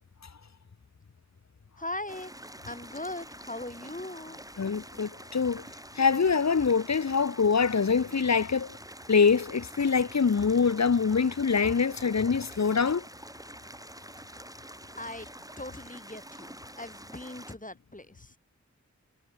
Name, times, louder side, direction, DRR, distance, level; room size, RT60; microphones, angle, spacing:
voice 1, 1.8-2.3 2.7-4.4 15.0-15.3 15.6-18.3, left 1 dB, 25° left, 5.8 m, -39 dB
sound 1, 2.1-17.6, right 1 dB, 10° right, 3.9 m, -47 dB
voice 2, 4.6-5.6 6.0-8.7 9.1-13.0, left 5 dB, 65° left, 1.1 m, -24 dB
wide cardioid pair, 55°, 29 cm